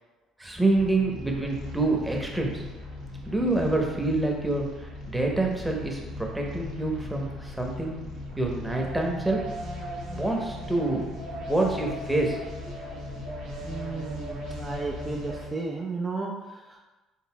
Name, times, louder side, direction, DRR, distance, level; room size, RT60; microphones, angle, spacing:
voice 1, 0.4-2.7 3.3-4.6 5.1-7.9 8.4-9.4 10.1-12.4 12.7-12.8, right 2 dB, 10° right, 0 dB, 1.0 m, -27 dB
sound 1, 0.7-15.5, left 1 dB, 70° right, 1.1 m, -38 dB
voice 2, 13.6-16.8, right 3 dB, 30° right, -2 dB, 0.6 m, -34 dB
5.7 x 3.9 x 2.3 m, 1.1 s
hypercardioid pair, 55°, 0 cm